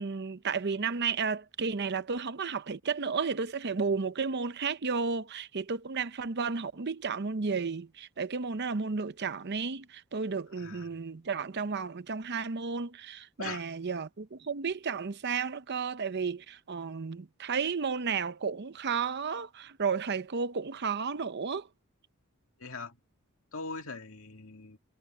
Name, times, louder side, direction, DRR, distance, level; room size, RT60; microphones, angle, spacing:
voice 1, 0.0-21.7, right 5 dB, 50° right, 0.7 m, -33 dB
voice 2, 10.6-10.9 13.4-13.6 22.6-23.0 23.5-24.8, left 4 dB, 65° left, 2.5 m, -41 dB
head